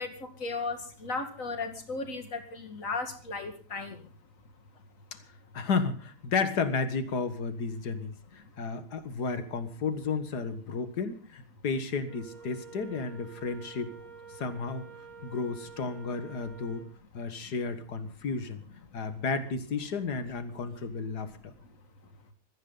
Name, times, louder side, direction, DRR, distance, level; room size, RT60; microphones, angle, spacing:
voice 1, 0.0-4.1, left 3 dB, 55° left, 5 dB, 2.7 m, -35 dB
voice 2, 5.5-13.9 14.3-14.9 15.2-16.8 17.1-18.6 18.9-21.5, left 4 dB, 85° left, 10 dB, 2.2 m, -32 dB
Wind instrument woodwind instrument, 12.1-17.0, right 6 dB, 60° right, 2.5 m, -49 dB
21.5 x 14.5 x 3.9 m, 0.38 s
omnidirectional pair, 1.7 m